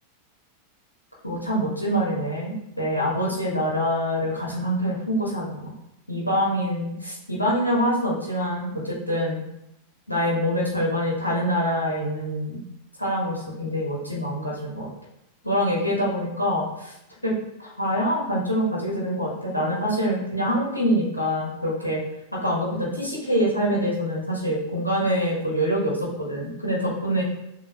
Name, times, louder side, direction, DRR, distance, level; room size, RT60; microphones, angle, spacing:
voice 1, 1.2-5.7 6.1-9.4 10.1-12.6 13.0-14.9 15.4-16.9 17.2-17.3 17.6-22.0 22.3-27.2, equal, 85° left, -4 dB, 1.2 m, -25 dB
6.5 x 2.7 x 2.8 m, 0.84 s
figure-of-eight pair, 90°, 0 cm